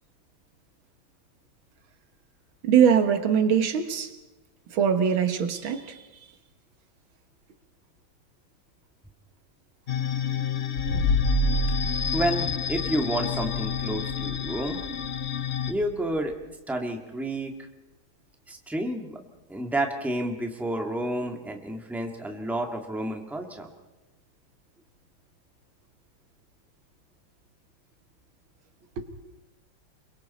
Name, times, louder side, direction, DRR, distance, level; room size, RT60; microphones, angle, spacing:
voice 1, 2.6-4.1 4.7-6.0 29.0-29.1, right 7 dB, 85° right, 8 dB, 2.1 m, -22 dB
sound 1, 9.9-15.7, left 8 dB, 55° left, 0.7 m, -30 dB
sound 2, 10.8-16.3, equal, 90° left, 4.4 m, -29 dB
voice 2, 12.1-14.8 15.7-16.3 16.7-17.7 18.5-19.2 19.5-23.7, right 1 dB, ahead, 3 dB, 1.7 m, -30 dB
29.5 x 22.5 x 4.2 m, 1.0 s
omnidirectional pair, 2.1 m